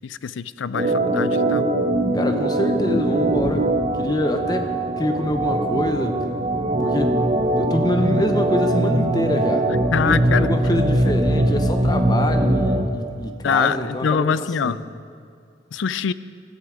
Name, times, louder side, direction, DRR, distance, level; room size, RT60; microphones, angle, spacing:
voice 1, 0.0-1.7 9.9-10.9 13.4-14.8 15.7-16.1, left 6 dB, 80° left, 16 dB, 0.4 m, -24 dB
Organ, 0.7-12.9, right 1 dB, 30° right, 1.0 m, -21 dB
voice 2, 2.1-3.7 4.0-6.3 6.8-7.3 7.6-9.7 10.0-14.8, left 1 dB, 20° left, 6 dB, 0.9 m, -25 dB
16.5 x 12.5 x 4.9 m, 2.4 s
head